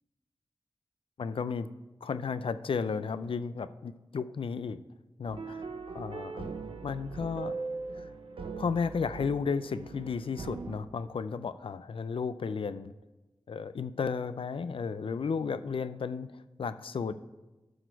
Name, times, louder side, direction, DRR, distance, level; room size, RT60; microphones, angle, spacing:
voice 1, 1.2-1.7 2.0-4.8 5.2-5.7 5.9-6.5 6.8-7.5 8.6-12.9 13.5-16.3 16.6-17.1, left 5 dB, 75° left, 13 dB, 0.4 m, -33 dB
sound 1, 5.3-10.8, right 4 dB, 75° right, 0.8 m, -40 dB
12.5 x 6.1 x 4.6 m, 1.1 s
wide cardioid pair, 60°, 9 cm